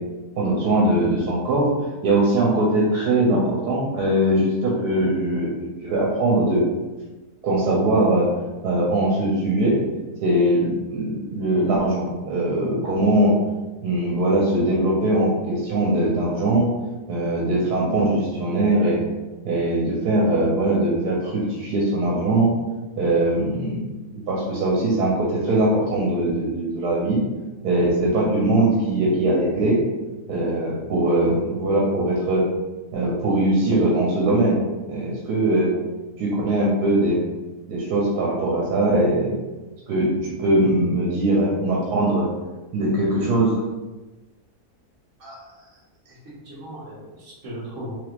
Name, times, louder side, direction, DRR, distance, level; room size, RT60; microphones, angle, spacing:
voice 1, 0.4-1.7 2.0-6.6 7.4-8.3 8.6-9.8 10.2-13.4 13.8-16.7 17.1-19.0 19.4-22.5 23.0-23.9 24.3-27.2 27.6-29.8 30.3-32.4 32.9-34.6 34.9-35.7 36.2-37.2 37.7-39.3 39.9-42.3 42.7-43.5, right 1 dB, 85° right, -4 dB, 1.3 m, -21 dB
voice 2, 45.2-45.7 46.0-47.9, equal, 55° right, -5 dB, 1.2 m, -38 dB
3.4 x 3.0 x 2.4 m, 1.2 s
omnidirectional pair, 1.7 m